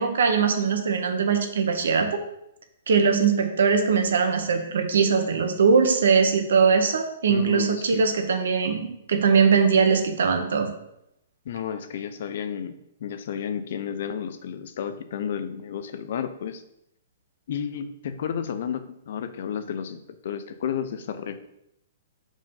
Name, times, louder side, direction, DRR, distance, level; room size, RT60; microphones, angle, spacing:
voice 1, 0.0-2.2 2.9-10.7, right 5 dB, 80° right, 5 dB, 1.5 m, -21 dB
voice 2, 7.3-8.0 11.4-16.6 17.5-21.4, left 8 dB, 55° left, 10 dB, 0.7 m, -32 dB
5.7 x 5.2 x 5.5 m, 0.80 s
hypercardioid pair, 165°, 0 cm